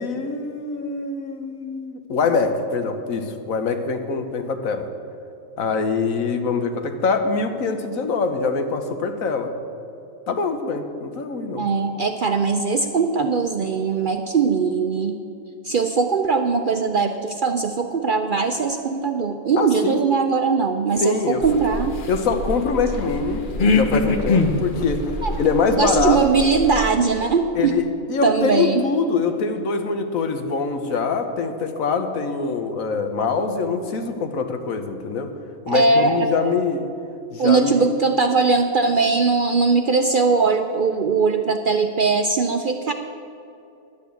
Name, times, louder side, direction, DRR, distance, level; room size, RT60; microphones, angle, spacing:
voice 1, 0.0-4.9 5.6-9.5 10.3-11.7 19.6-20.0 21.0-21.4 22.1-25.0 25.3-26.2 27.6-35.3 35.7-36.9 37.3-37.9, left 4 dB, 80° left, 7 dB, 1.4 m, -24 dB
voice 2, 11.5-15.2 15.6-21.9 25.2-25.3 25.7-27.7 28.2-28.8 35.7-36.3 37.4-42.9, right 4 dB, 55° right, 6 dB, 0.6 m, -20 dB
sound 1, 21.4-26.9, left 3 dB, 45° left, 1.0 m, -24 dB
11.0 x 8.4 x 8.2 m, 2.7 s
omnidirectional pair, 1.4 m